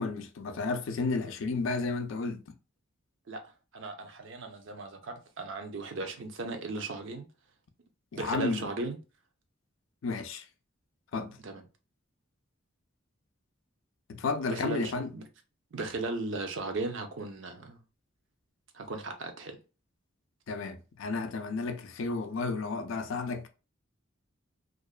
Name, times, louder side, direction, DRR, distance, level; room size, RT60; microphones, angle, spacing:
voice 1, 0.0-2.4 8.1-8.7 10.0-10.4 11.1-11.4 14.1-15.1 20.5-23.5, left 4 dB, 70° left, 0.4 m, -32 dB
voice 2, 3.7-7.3 8.2-9.0 11.4-11.6 14.5-15.2 15.7-17.8 18.7-19.5, right 3 dB, 65° right, 0.5 m, -36 dB
2.5 x 2.2 x 2.3 m
head